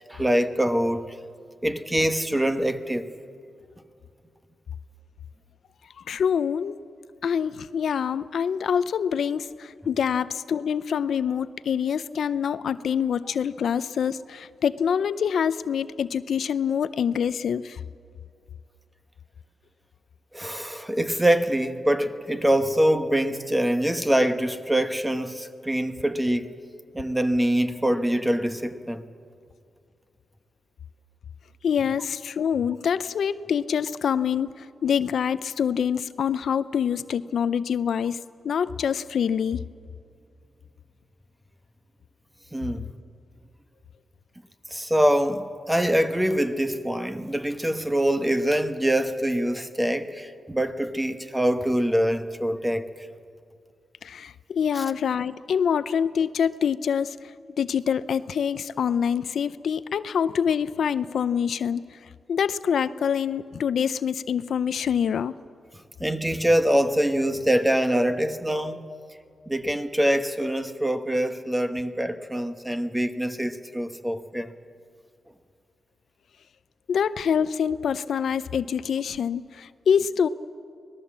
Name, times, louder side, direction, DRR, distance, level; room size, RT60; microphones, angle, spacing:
voice 1, 0.1-1.0 1.6-3.1 20.3-26.5 26.9-29.0 42.5-42.9 44.7-52.9 54.7-54.8 66.0-68.9 69.5-74.5, right 1 dB, 5° right, 1.0 m, -24 dB
voice 2, 6.1-6.8 7.2-17.8 31.6-38.2 38.4-39.6 54.0-57.2 57.6-61.8 62.3-65.3 68.9-69.0 76.9-80.3, left 7 dB, 70° left, 0.5 m, -25 dB
25.0 x 19.0 x 7.4 m
wide cardioid pair, 130°, 0 cm